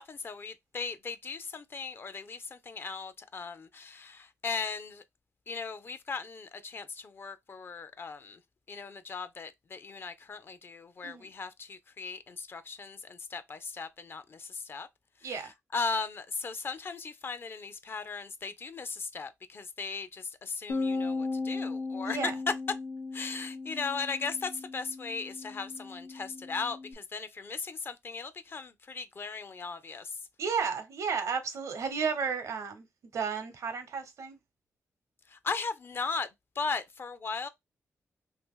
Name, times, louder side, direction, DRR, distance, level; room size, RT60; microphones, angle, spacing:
voice 1, 0.0-5.0 5.5-8.4 8.7-14.9 15.2-22.3 23.1-30.2 35.3-36.3 36.6-37.5, left 4 dB, 45° left, 0.5 m, -37 dB
Bass guitar, 20.7-26.9, left 3 dB, 70° left, 0.8 m, -36 dB
voice 2, 22.0-22.3 30.4-32.8 33.1-34.4, right 6 dB, 85° right, 0.8 m, -33 dB
2.8 x 2.6 x 3.6 m
cardioid pair, 90°, 5 cm